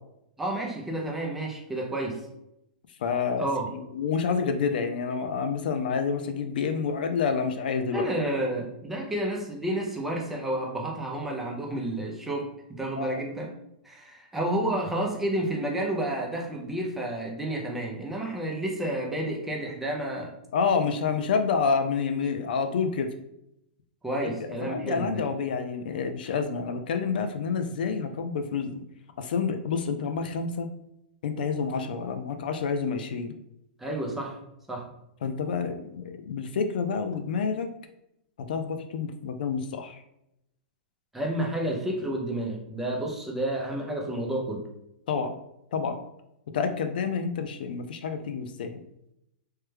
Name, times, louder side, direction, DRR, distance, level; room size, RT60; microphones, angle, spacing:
voice 1, 0.4-2.3 3.4-3.7 7.9-13.5 13.8-20.3 24.0-25.3 33.8-34.4 34.7-34.9 41.1-44.7, right 1 dB, 5° right, -1 dB, 0.5 m, -30 dB
voice 2, 3.0-3.5 3.9-8.1 13.0-13.2 20.5-23.1 24.5-28.8 29.2-30.7 31.2-33.4 35.2-37.7 38.5-40.0 45.1-45.3 45.7-46.0 46.5-48.8, left 5 dB, 70° left, 7 dB, 0.4 m, -28 dB
3.2 x 2.1 x 3.2 m, 0.81 s
hypercardioid pair, 155°, 5 cm